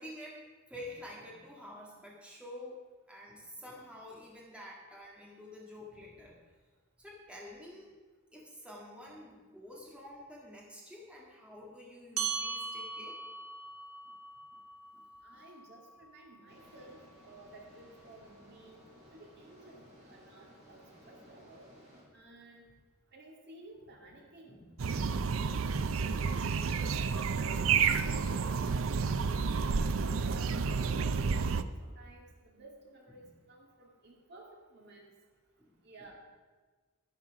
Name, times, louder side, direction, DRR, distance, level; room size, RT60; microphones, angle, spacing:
voice 1, 0.0-2.8 3.1-6.4 7.0-7.9 8.3-13.2 14.9-15.1 15.3-15.4 20.8-20.9 24.5-24.8 31.9-32.0 33.2-33.3 35.6-35.7, left 1 dB, 5° right, -4 dB, 1.9 m, -49 dB
sound 1, 12.2-17.0, right 5 dB, 80° right, 1.4 m, -40 dB
voice 2, 15.2-18.8 19.1-21.7 22.1-22.6 23.1-24.6 25.0-27.6 27.9-29.9 30.2-31.5 31.8-35.1 35.8-36.1, right 2 dB, 50° right, -1 dB, 2.2 m, -55 dB
sound 2, 16.5-22.0, equal, 30° right, 4.6 m, -58 dB
sound 3, 24.8-31.6, right 5 dB, 65° right, 0.5 m, -30 dB
11.5 x 11.0 x 4.8 m, 1.4 s
head